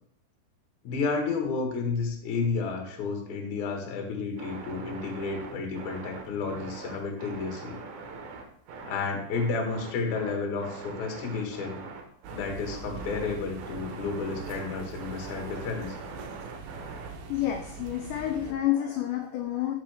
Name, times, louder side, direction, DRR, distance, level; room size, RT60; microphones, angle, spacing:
voice 1, 0.8-7.8 8.8-11.8 12.3-16.0, left 4 dB, 55° left, 2 dB, 2.3 m, -31 dB
sound 1, 4.4-17.4, right 4 dB, 70° right, 3.3 m, -43 dB
sound 2, 12.2-18.5, right 5 dB, 90° right, 2.1 m, -43 dB
voice 2, 17.3-19.8, left 12 dB, 80° left, 4 dB, 2.5 m, -29 dB
13.0 x 5.6 x 3.5 m, 0.69 s
omnidirectional pair, 5.6 m